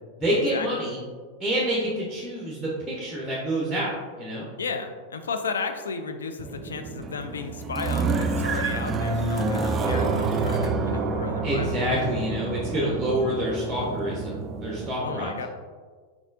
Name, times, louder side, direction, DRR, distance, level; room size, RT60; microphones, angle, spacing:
voice 1, 0.2-1.0 1.4-4.5 11.4-15.5, equal, 5° right, -5 dB, 0.8 m, -27 dB
voice 2, 4.6-12.0 15.0-15.5, left 4 dB, 70° left, 6 dB, 0.4 m, -33 dB
sound 1, 6.4-14.9, right 3 dB, 20° right, 0.3 m, -28 dB
4.5 x 4.0 x 2.5 m, 1.5 s
figure-of-eight pair, 90°, 0 cm